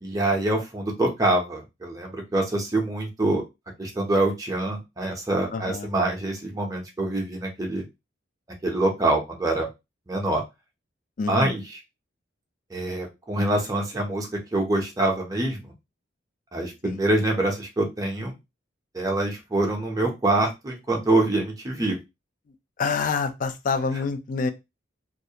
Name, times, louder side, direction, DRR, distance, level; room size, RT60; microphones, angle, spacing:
voice 1, 0.0-3.4 3.8-7.8 8.6-9.7 10.1-10.4 11.3-11.8 12.7-15.7 16.5-18.3 18.9-22.0, right 2 dB, 20° right, 0.5 m, -25 dB
voice 2, 5.5-5.9 11.2-11.5 16.8-17.0 22.8-24.5, left 5 dB, 45° left, 0.3 m, -27 dB
2.3 x 2.1 x 2.7 m
head